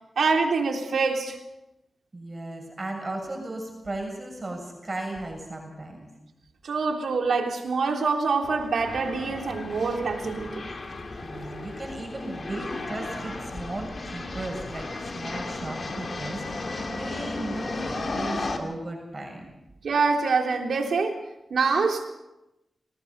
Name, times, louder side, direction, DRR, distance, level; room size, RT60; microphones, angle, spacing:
voice 1, 0.2-1.4 6.6-10.7 19.8-21.2 21.5-22.1, right 4 dB, 85° right, 2 dB, 3.5 m, -25 dB
voice 2, 2.1-6.1 11.2-19.4, right 2 dB, 30° right, 1 dB, 7.0 m, -36 dB
sound 1, 8.4-18.6, left 2 dB, 55° left, 3.1 m, -35 dB
27.0 x 19.0 x 5.5 m, 0.92 s
wide cardioid pair, 80°, 0 cm